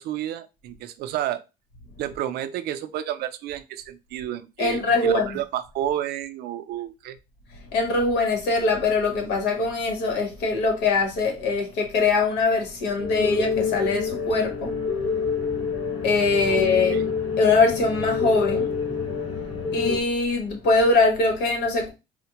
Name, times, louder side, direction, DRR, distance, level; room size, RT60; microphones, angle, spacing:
voice 1, 0.0-1.4 2.0-7.2 16.5-16.6 16.9-17.1, right 12 dB, 70° right, 0.4 m, -31 dB
voice 2, 4.6-5.3 7.7-14.8 16.0-17.0 17.4-18.7 19.7-21.9, left 3 dB, 85° left, 1.2 m, -22 dB
sound 1, 13.0-20.0, left 5 dB, 35° left, 1.2 m, -27 dB
4.1 x 2.1 x 2.9 m
cardioid pair, 110°, 17 cm